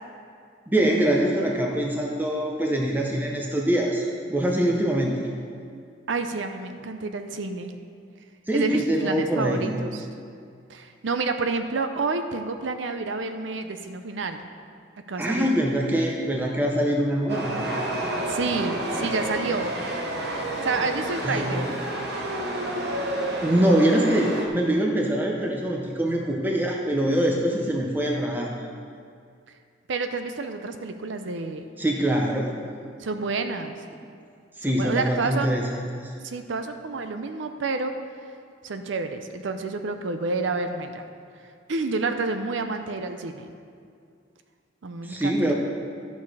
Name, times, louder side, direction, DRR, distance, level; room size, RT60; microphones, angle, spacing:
voice 1, 0.7-5.2 8.5-9.7 15.2-17.7 21.2-21.6 23.4-28.5 31.8-32.6 34.6-35.6 35.9-36.1 45.0-45.5, right 1 dB, 10° right, -1 dB, 0.7 m, -24 dB
voice 2, 6.1-7.7 8.5-10.1 10.7-14.4 15.1-15.5 18.3-19.7 20.6-21.7 29.9-31.7 33.0-33.8 34.6-35.6 36.2-37.9 38.6-41.1 41.4-43.5 44.8-45.5, right 3 dB, 75° right, 7 dB, 0.6 m, -29 dB
Chatter / Subway metro underground, 17.3-24.5, right 1 dB, 55° right, 1.0 m, -30 dB
12.0 x 6.3 x 4.8 m, 2.3 s
head